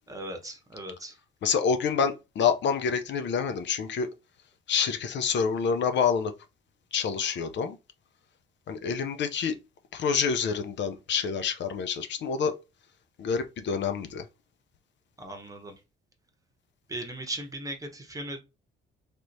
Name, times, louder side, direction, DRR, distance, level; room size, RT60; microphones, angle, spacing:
voice 1, 0.1-1.2 15.2-15.8 16.9-18.4, right 1 dB, 15° right, 1.0 m, -38 dB
voice 2, 1.4-4.1 4.7-6.3 6.9-7.8 8.7-9.6 9.9-12.5 13.2-14.3, left 6 dB, 60° left, 0.6 m, -27 dB
3.3 x 2.9 x 2.6 m
cardioid pair, 90°, 21 cm